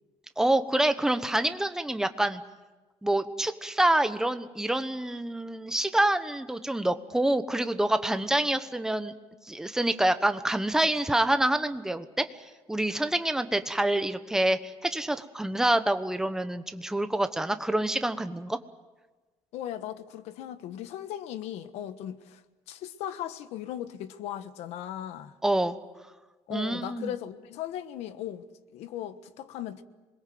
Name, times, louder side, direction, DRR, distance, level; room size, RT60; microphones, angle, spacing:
voice 1, 0.4-2.4 3.0-9.1 9.5-12.3 12.7-18.6 25.4-25.7 26.5-27.1, right 1 dB, 5° right, 1.0 m, -27 dB
voice 2, 19.5-25.3 26.5-28.5 28.7-29.8, left 11 dB, 85° left, 1.3 m, -37 dB
27.0 x 21.5 x 7.8 m
cardioid pair, 155°, 11 cm